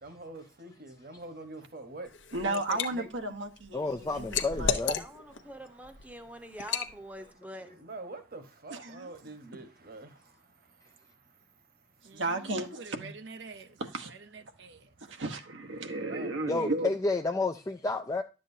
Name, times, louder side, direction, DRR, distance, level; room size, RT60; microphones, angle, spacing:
voice 1, 0.0-2.1 2.4-3.1 7.8-10.1 16.0-16.5, right 2 dB, 50° right, 1.2 m, -45 dB
Liquid, 2.1-2.9 3.3-5.4 5.8-6.0 6.6-6.9, left 6 dB, 80° left, 0.8 m, -32 dB
voice 2, 2.3-4.8 8.7-9.1 12.1-13.1 13.9-14.1 15.1-16.9, right 2 dB, 85° right, 1.1 m, -34 dB
voice 3, 3.7-5.0 16.5-18.2, left 3 dB, 15° left, 0.3 m, -30 dB
voice 4, 5.0-7.7, equal, 10° right, 0.8 m, -45 dB
voice 5, 12.0-14.9, right 4 dB, 70° right, 0.6 m, -48 dB
11.5 x 7.5 x 2.7 m
head